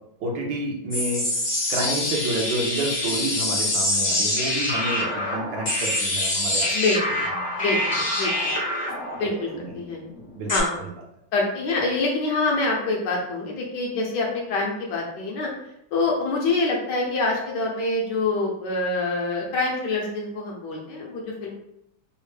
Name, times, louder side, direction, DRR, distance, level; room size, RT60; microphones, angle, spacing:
voice 1, 0.2-1.3 1.7-6.8 7.4-7.5 9.1-9.2 9.6-9.7 10.3-10.5 10.8-10.9, right 1 dB, 70° right, -1 dB, 1.3 m, -29 dB
sound 1, 0.9-10.6, left 1 dB, 45° left, 0.5 m, -25 dB
voice 2, 6.7-7.2 7.6-8.5 9.2-10.0 10.5-10.7 11.3-15.5 15.9-21.5, left 3 dB, 70° left, -1 dB, 1.2 m, -26 dB
4.2 x 2.0 x 3.2 m, 0.78 s
omnidirectional pair, 2.2 m